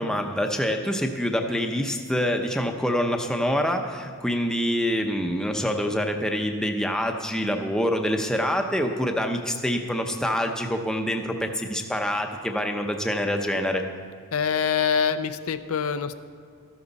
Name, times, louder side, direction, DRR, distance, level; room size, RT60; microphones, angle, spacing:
voice 1, 0.0-13.8, equal, 5° left, 4 dB, 0.6 m, -26 dB
voice 2, 14.3-16.2, left 6 dB, 75° left, 10 dB, 0.5 m, -25 dB
13.5 x 12.5 x 4.0 m, 2.2 s
head